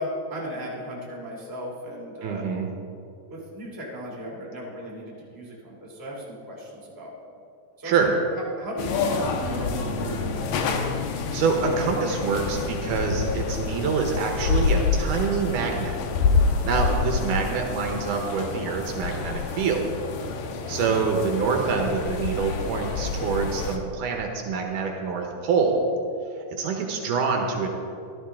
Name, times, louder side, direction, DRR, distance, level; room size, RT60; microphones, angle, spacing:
voice 1, 0.0-2.5 3.3-7.1 7.8-10.4, equal, 5° right, -4 dB, 2.0 m, -36 dB
voice 2, 2.2-2.7 7.8-8.1 11.3-16.0 16.6-19.9 20.7-25.8 26.5-27.7, right 5 dB, 75° right, 2 dB, 2.5 m, -26 dB
sound 1, 8.8-23.8, left 4 dB, 85° left, 2.6 m, -27 dB
15.0 x 12.0 x 3.6 m, 2.5 s
omnidirectional pair, 3.9 m